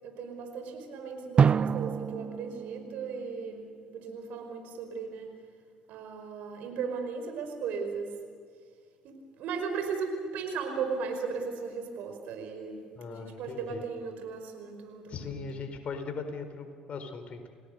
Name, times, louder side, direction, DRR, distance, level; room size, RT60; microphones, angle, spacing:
voice 1, 0.0-5.3 5.9-8.1 9.0-12.8 13.1-15.3, right 5 dB, 65° right, 5 dB, 5.2 m, -36 dB
Drum, 1.4-4.1, right 6 dB, 40° right, 0.7 m, -28 dB
voice 2, 12.9-13.8 15.1-17.5, left 4 dB, 50° left, 7 dB, 4.5 m, -39 dB
29.5 x 19.0 x 6.7 m, 2.1 s
hypercardioid pair, 60°, 3 cm